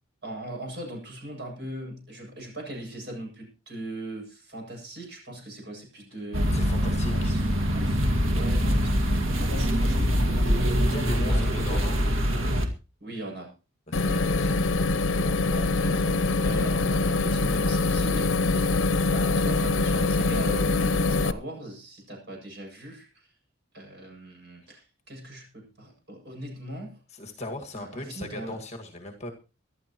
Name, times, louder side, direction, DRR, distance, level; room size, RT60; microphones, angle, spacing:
voice 1, 0.2-6.5 7.0-11.9 13.0-13.5 14.0-14.4 15.5-23.3 23.7-27.0 27.7-28.6, right 1 dB, 55° right, 7.8 m, -39 dB
sound 1, 6.3-12.7, equal, 90° right, 2.1 m, -24 dB
voice 2, 6.5-7.3 10.8-12.0 13.9-14.7 27.1-29.3, left 1 dB, 35° left, 2.0 m, -38 dB
sound 2, 13.9-21.3, left 3 dB, 70° left, 0.7 m, -24 dB
24.0 x 11.5 x 3.1 m
head